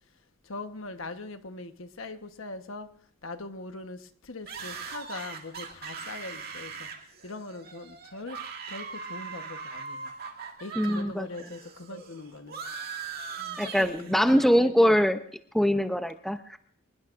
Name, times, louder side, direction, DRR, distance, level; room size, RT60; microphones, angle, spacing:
voice 1, 0.4-2.9 3.2-6.9 7.2-8.4 8.7-10.1 10.6-12.6 13.3-15.0, left 2 dB, 75° left, 1.2 m, -41 dB
sound 1, 4.5-11.0 11.3-14.5, right 5 dB, 45° right, 2.3 m, -40 dB
voice 2, 10.8-11.3 13.6-15.2 15.5-16.6, equal, ahead, 0.6 m, -23 dB
25.5 x 20.5 x 2.6 m
head